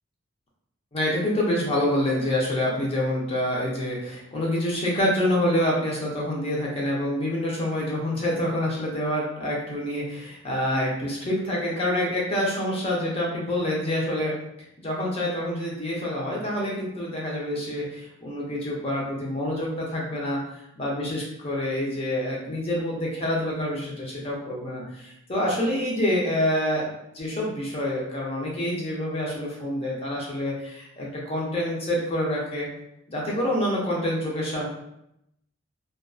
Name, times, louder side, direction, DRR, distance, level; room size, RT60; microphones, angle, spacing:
voice 1, 0.9-14.3 14.8-20.4 20.8-26.9 27.1-32.7 33.1-34.7, left 1 dB, 25° left, -4 dB, 0.6 m, -27 dB
2.6 x 2.3 x 2.3 m, 0.81 s
head